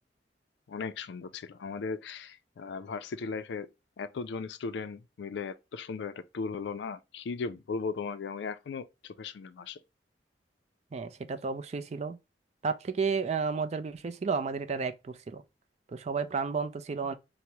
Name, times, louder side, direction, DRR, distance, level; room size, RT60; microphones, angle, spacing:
voice 1, 0.7-3.7 4.0-9.8, left 4 dB, 75° left, 0.4 m, -37 dB
voice 2, 10.9-12.2 12.6-15.4 15.9-17.1, right 5 dB, 40° right, 0.4 m, -32 dB
4.5 x 2.0 x 2.7 m
head